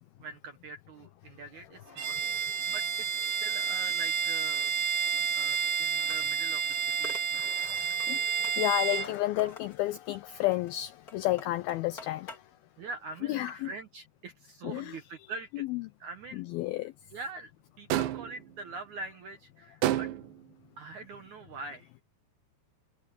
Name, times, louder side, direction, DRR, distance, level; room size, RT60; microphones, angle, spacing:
voice 1, 0.2-2.2 2.7-4.7 5.3-7.5 9.4-9.5 12.8-15.6 16.0-16.4 17.1-17.5 17.8-20.1 20.8-21.9, right 3 dB, 75° right, 1.8 m, -43 dB
Bowed string instrument, 2.0-9.1, right 6 dB, 55° right, 3.8 m, -30 dB
voice 2, 2.1-2.6 7.3-12.3 13.3-13.7 14.6-15.0 15.7-15.8 16.3-16.9, left 16 dB, 90° left, 2.1 m, -32 dB
sound 1, 4.8-12.4, left 4 dB, 25° left, 2.5 m, -50 dB
sound 2, 17.9-18.4 19.8-20.4, right 13 dB, 90° right, 3.6 m, -29 dB
omnidirectional pair, 5.0 m